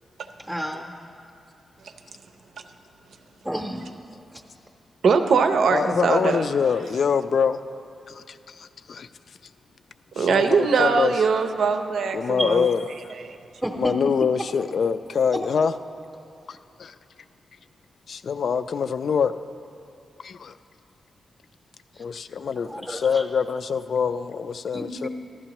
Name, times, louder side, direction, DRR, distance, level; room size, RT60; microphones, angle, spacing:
voice 1, 0.4-0.9 3.4-3.8 4.3-4.4 12.4-12.7 13.6-14.0 15.3-15.4 21.9-22.0 22.6-23.2 24.7-25.1, equal, 10° right, 0 dB, 0.7 m, -31 dB
voice 2, 5.0-6.5 10.1-12.6 13.1-13.4, right 5 dB, 80° right, 7 dB, 0.6 m, -21 dB
voice 3, 5.7-7.6 8.1-9.1 10.2-11.1 12.1-12.9 13.8-15.7 16.5-16.9 18.1-19.4 20.2-20.6 22.0-25.1, left 6 dB, 65° left, 12 dB, 0.3 m, -25 dB
14.5 x 12.5 x 3.0 m, 2.5 s
wide cardioid pair, 105°, 0 cm